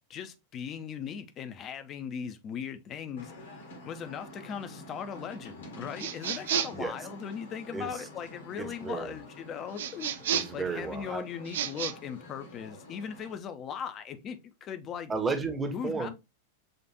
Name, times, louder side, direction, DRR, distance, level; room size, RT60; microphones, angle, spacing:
voice 1, 0.1-3.6 3.8-10.2 10.5-15.1 15.7-16.1, left 7 dB, 30° left, 0.6 m, -39 dB
sound 1, 3.2-13.4, left 1 dB, 65° left, 1.4 m, -48 dB
sound 2, 6.0-6.9 9.8-10.6 11.4-11.9, right 8 dB, 60° right, 0.4 m, -31 dB
voice 2, 7.7-8.1 8.6-9.1 10.3-11.2 15.1-16.1, right 4 dB, 15° right, 0.8 m, -33 dB
6.5 x 2.4 x 2.8 m
figure-of-eight pair, 90°, 0 cm